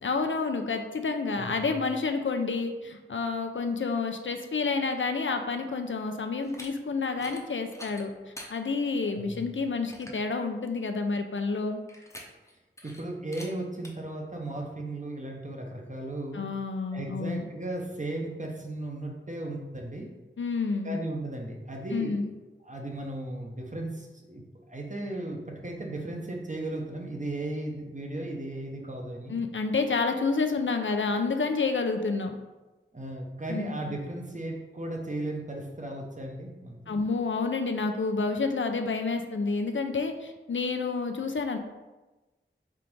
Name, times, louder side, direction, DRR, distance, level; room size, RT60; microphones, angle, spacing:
voice 1, 0.0-8.1 8.5-11.8 16.3-17.4 20.4-21.0 21.9-22.3 29.3-32.4 33.5-33.7 36.9-41.6, left 4 dB, 65° left, 6 dB, 0.4 m, -29 dB
voice 2, 1.3-1.8 9.1-9.4 12.8-16.4 16.9-20.1 20.8-22.3 22.6-29.3 32.9-37.0, right 1 dB, 35° right, 0 dB, 0.7 m, -36 dB
sound 1, 6.4-6.7 7.1-7.4 7.7-8.5 9.1-9.2 9.6-9.7 9.9-10.2 11.9-12.5 12.8-13.0 13.3-13.5 13.8-13.9, left 1 dB, 15° left, 0.7 m, -45 dB
3.6 x 2.5 x 4.5 m, 1.1 s
wide cardioid pair, 45°, 21 cm